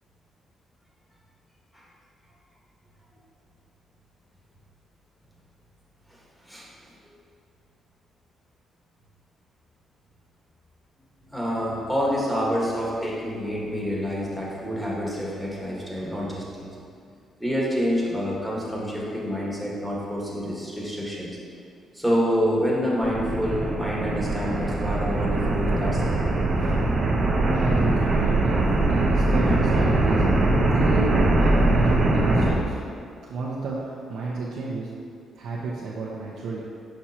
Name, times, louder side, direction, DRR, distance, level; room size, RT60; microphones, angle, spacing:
voice 1, 11.3-16.7 17.4-21.3 21.9-26.3, equal, ahead, -5 dB, 1.5 m, -27 dB
sound 1, 23.0-32.5, right 2 dB, 45° right, 0.8 m, -22 dB
voice 2, 27.5-32.8 33.2-34.9 35.4-36.6, right 3 dB, 75° right, -7 dB, 0.8 m, -32 dB
6.2 x 5.9 x 2.9 m, 2.3 s
cardioid pair, 90°, 0 cm